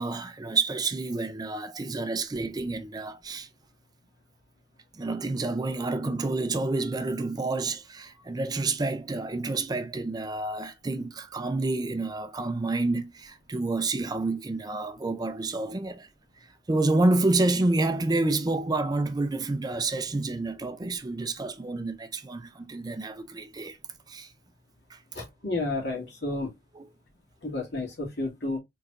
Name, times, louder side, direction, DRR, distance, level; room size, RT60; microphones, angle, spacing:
voice 1, 0.0-3.5 4.9-16.1 16.7-23.8 24.1-24.3 24.9-25.0 26.8-26.9, right 2 dB, 20° right, 0.4 m, -29 dB
voice 2, 25.1-26.5 27.4-28.6, left 2 dB, 65° left, 2.2 m, -31 dB
4.6 x 3.9 x 2.4 m
head